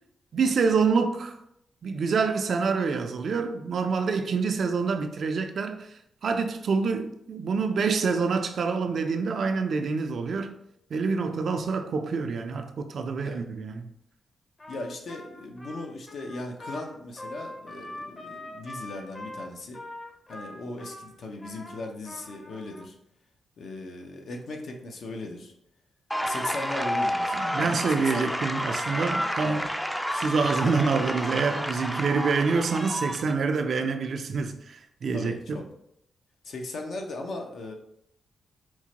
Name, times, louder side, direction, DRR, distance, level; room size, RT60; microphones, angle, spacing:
voice 1, 0.3-1.4 1.8-5.9 6.2-10.5 10.9-13.9 27.4-29.6 30.1-35.6, right 5 dB, 65° right, 0.4 m, -26 dB
Trumpet, 14.6-22.9, left 1 dB, 30° left, 0.7 m, -43 dB
voice 2, 14.7-19.8 20.3-22.9 23.6-25.5 26.2-28.3 29.4-30.0 30.4-30.7 35.1-35.6 36.4-37.7, left 2 dB, 70° left, 0.6 m, -38 dB
sound 1, 26.1-33.3, equal, 5° left, 0.4 m, -30 dB
4.5 x 2.1 x 2.8 m
supercardioid pair, 55°, 0 cm